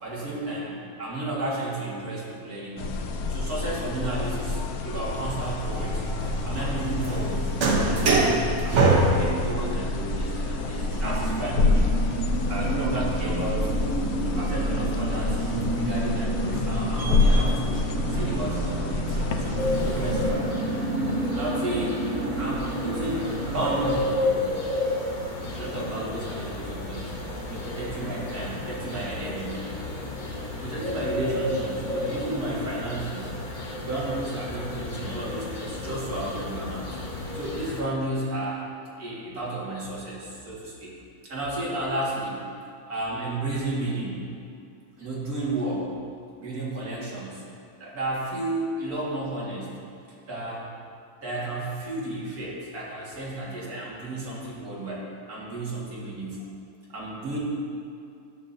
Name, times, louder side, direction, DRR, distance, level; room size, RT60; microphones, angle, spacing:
voice 1, 0.0-3.0 3.3-6.0 6.4-7.5 7.9-8.3 8.6-12.0 12.5-13.7 14.2-15.4 15.7-20.8 21.3-22.0 22.4-24.5 25.5-27.1 27.5-29.6 30.6-33.3 33.8-36.9 37.3-38.6 39.0-40.9 41.3-42.4 42.9-44.2 45.0-45.9 46.4-47.4 47.8-49.7 50.3-50.7 51.2-56.5 56.9-57.4, right 1 dB, 75° right, -6 dB, 2.2 m, -32 dB
sound 1, 2.8-20.3, left 3 dB, 85° left, 1.1 m, -28 dB
sound 2, 5.2-24.0, right 2 dB, 55° right, 1.1 m, -28 dB
sound 3, 19.6-37.8, left 2 dB, 40° left, 0.9 m, -32 dB
10.5 x 7.1 x 2.6 m, 2.5 s
omnidirectional pair, 1.6 m